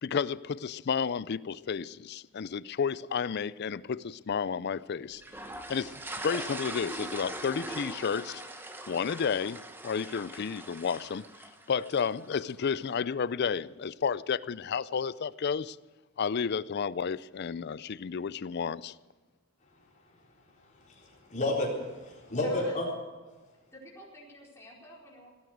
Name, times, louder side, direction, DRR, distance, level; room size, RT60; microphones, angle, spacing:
voice 1, 0.0-5.2 5.7-8.4 8.9-11.2 11.7-15.8 16.2-19.0, left 6 dB, 50° left, 0.4 m, -32 dB
sound 1, 5.2-12.5, right 1 dB, 10° right, 1.0 m, -41 dB
voice 2, 20.6-22.9, left 1 dB, 35° left, 4.0 m, -32 dB
voice 3, 22.4-22.8 23.7-25.3, left 1 dB, 15° left, 4.5 m, -49 dB
17.5 x 9.3 x 8.0 m
head